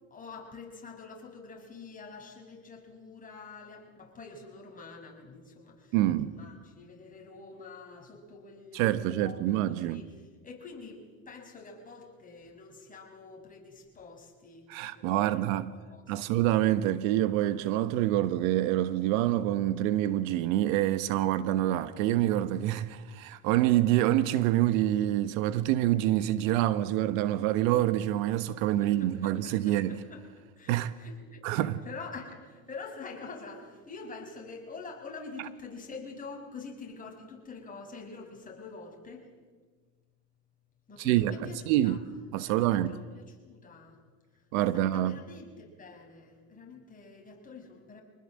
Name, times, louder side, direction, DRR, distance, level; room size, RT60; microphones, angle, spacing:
voice 1, 0.1-6.0 6.2-9.4 9.7-10.0 10.4-14.7 14.9-15.6 15.9-16.3 28.6-30.2 30.6-39.3 40.9-42.0 42.4-44.0 44.6-48.0, left 4 dB, 20° left, 6.0 m, -46 dB
voice 2, 5.9-6.3 8.7-10.0 14.7-15.7 16.1-30.0 30.7-31.0 31.4-31.8 41.0-42.0 42.3-42.9 44.5-45.2, right 13 dB, 65° right, 1.3 m, -26 dB
26.0 x 20.0 x 7.7 m
supercardioid pair, 120°, 43 cm